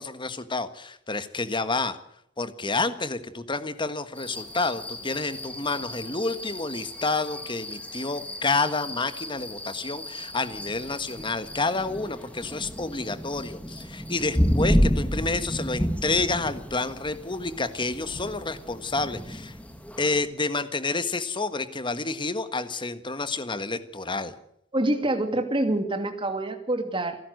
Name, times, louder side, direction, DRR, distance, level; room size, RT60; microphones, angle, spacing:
voice 1, 0.0-2.0 2.4-19.6 20.0-24.3, left 3 dB, 25° left, 12 dB, 1.5 m, -29 dB
sound 1, 4.2-20.2, equal, 5° left, 2.4 m, -31 dB
voice 2, 24.7-27.2, right 1 dB, 25° right, 7 dB, 2.7 m, -26 dB
28.5 x 11.5 x 8.0 m, 0.73 s
head